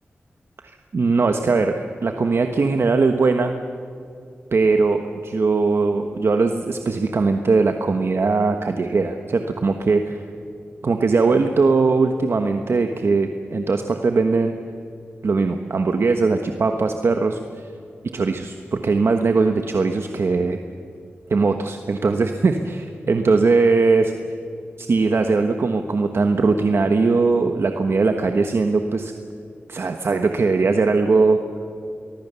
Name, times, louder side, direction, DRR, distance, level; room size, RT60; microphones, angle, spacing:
voice 1, 0.6-1.7 2.0-3.5 4.5-10.2 10.8-14.6 15.2-17.7 18.1-20.6 21.3-24.1 24.8-29.1 29.7-31.4, right 4 dB, 65° right, 6 dB, 1.3 m, -20 dB
24.0 x 20.5 x 6.9 m, 2.5 s
wide cardioid pair, 90°, 5 cm